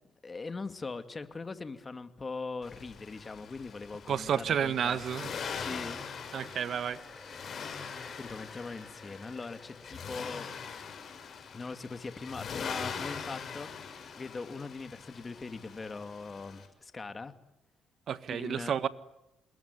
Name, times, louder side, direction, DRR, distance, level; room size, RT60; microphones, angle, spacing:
voice 1, 0.2-5.0 5.6-6.0 8.2-10.5 11.5-17.3 18.3-18.7, left 4 dB, 30° left, 9 dB, 2.5 m, -41 dB
Accelerating revving vroom, 2.6-16.7, left 6 dB, 55° left, 6.4 m, -42 dB
voice 2, 4.1-5.3 6.3-7.0 18.1-18.9, right 8 dB, 60° right, 13 dB, 1.6 m, -31 dB
sound 1, 4.7-11.1, left 1 dB, 10° left, 4.7 m, -54 dB
28.0 x 21.5 x 9.9 m, 0.92 s
cardioid pair, 90°, 0 cm